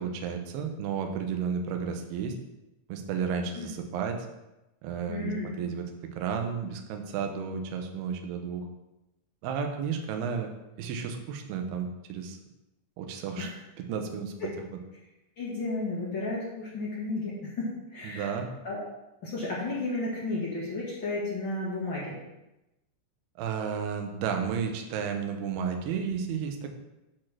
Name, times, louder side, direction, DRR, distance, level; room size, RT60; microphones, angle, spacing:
voice 1, 0.0-2.4 2.9-4.2 4.8-5.9 6.2-8.7 9.4-10.5 10.8-12.4 13.0-13.5 13.8-14.5 18.0-18.5 23.4-26.7, right 6 dB, 75° right, 5 dB, 2.7 m, -32 dB
voice 2, 5.1-5.5 13.4-13.5 15.4-18.3 18.6-18.8 19.2-22.2, left 2 dB, 45° left, -7 dB, 1.5 m, -33 dB
8.8 x 4.4 x 6.0 m, 0.95 s
omnidirectional pair, 5.0 m